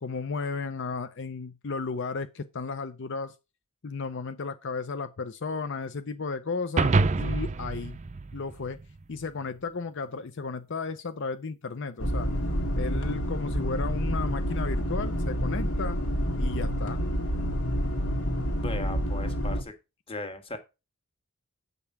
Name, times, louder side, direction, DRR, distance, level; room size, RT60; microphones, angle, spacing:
voice 1, 0.0-3.3 3.8-8.0 8.3-8.8 9.1-12.3 12.8-16.0 16.4-17.0, left 4 dB, 55° left, 0.6 m, -34 dB
sound 1, 6.8-9.3, right 3 dB, 35° right, 0.5 m, -27 dB
sound 2, 12.0-19.6, equal, 75° left, 1.9 m, -28 dB
voice 2, 18.6-19.7 20.1-20.6, left 2 dB, 25° left, 1.7 m, -37 dB
8.2 x 5.4 x 5.9 m
head